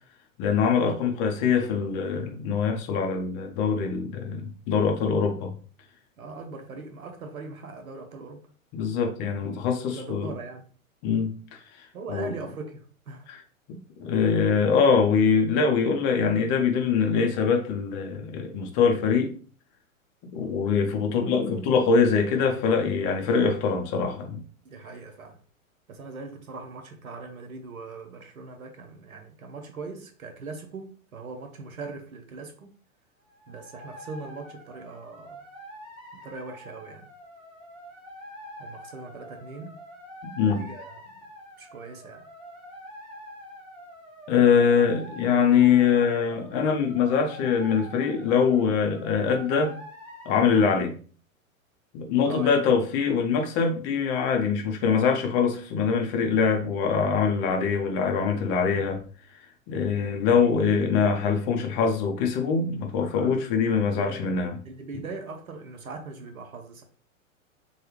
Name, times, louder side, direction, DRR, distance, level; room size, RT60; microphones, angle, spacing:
voice 1, 0.4-5.5 8.7-10.3 11.0-11.6 12.1-12.3 13.3-13.4 13.7-19.3 20.3-24.4 40.2-40.6 44.3-49.8 50.3-50.9 51.9-59.0 59.7-64.6, left 6 dB, 30° left, 0.5 m, -23 dB
voice 2, 6.2-8.5 9.9-10.7 11.9-13.3 24.6-25.4 25.9-32.7 33.5-35.4 36.1-37.1 38.6-39.8 40.4-41.2 41.6-42.3 52.2-52.6 63.9-64.3 64.6-66.8, right 3 dB, 85° right, 0.7 m, -40 dB
sound 1, 33.3-50.6, equal, 15° right, 0.7 m, -45 dB
3.3 x 2.3 x 2.9 m
figure-of-eight pair, 100°, 42 cm